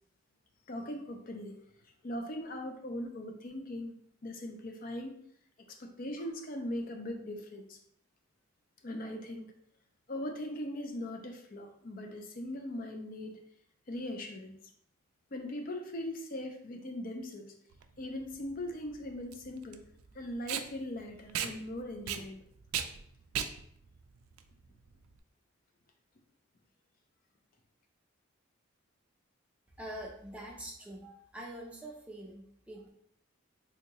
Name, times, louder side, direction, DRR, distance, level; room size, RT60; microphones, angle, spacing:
voice 1, 0.7-1.6 2.0-3.9 4.2-5.2 5.7-7.8 8.8-9.5 10.1-13.4 13.9-14.6 15.3-17.5 18.0-19.8 20.1-22.4, left 1 dB, 40° left, 4 dB, 0.5 m, -40 dB
Packing tape duct tape, 17.7-25.2, right 9 dB, 90° right, 0.3 m, -39 dB
voice 2, 29.8-32.9, right 1 dB, 5° right, -2 dB, 0.5 m, -45 dB
3.6 x 2.7 x 2.9 m, 0.66 s
head